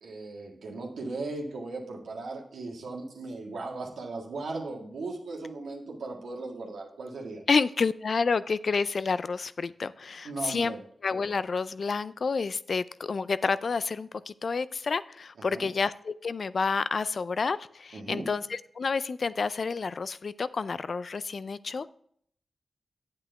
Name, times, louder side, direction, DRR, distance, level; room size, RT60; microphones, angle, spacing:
voice 1, 0.0-7.4 10.2-10.8 15.5-15.7 17.9-18.3, right 3 dB, 90° right, -1 dB, 1.8 m, -37 dB
voice 2, 7.5-10.7 11.0-21.9, left 4 dB, 65° left, 16 dB, 0.4 m, -29 dB
8.7 x 8.2 x 3.4 m, 0.66 s
cardioid pair, 40°, 0 cm